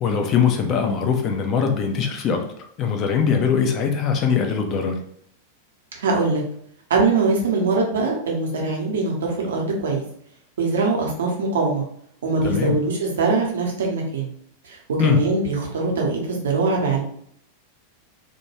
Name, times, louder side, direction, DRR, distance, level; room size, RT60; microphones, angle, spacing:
voice 1, 0.0-2.4 2.8-4.9 12.4-12.8 15.0-15.2, left 6 dB, 35° left, 3 dB, 0.4 m, -21 dB
voice 2, 6.0-6.4 6.9-10.0 10.6-11.8 12.2-14.3 14.6-17.0, right 3 dB, 65° right, -1 dB, 0.7 m, -22 dB
2.2 x 2.2 x 3.0 m, 0.68 s
figure-of-eight pair, 90°, 0 cm